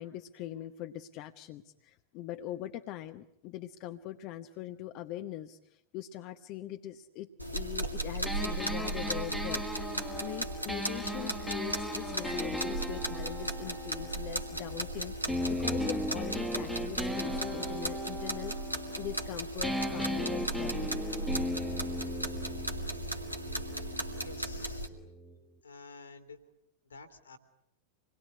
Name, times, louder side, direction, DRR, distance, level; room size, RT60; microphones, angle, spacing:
voice 1, 0.0-9.9 10.2-18.5 18.9-21.0, left 13 dB, 40° left, 7 dB, 1.0 m, -42 dB
sound 1, 7.4-24.9, right 1 dB, 90° right, 2.3 m, -36 dB
sound 2, 8.3-14.8 15.3-19.3 19.6-25.4, equal, ahead, 1.7 m, -37 dB
voice 2, 24.2-24.9 25.6-26.4 26.8-27.4, left 4 dB, 75° left, 8 dB, 2.8 m, -50 dB
26.5 x 20.5 x 9.8 m, 0.82 s
figure-of-eight pair, 90°, 0 cm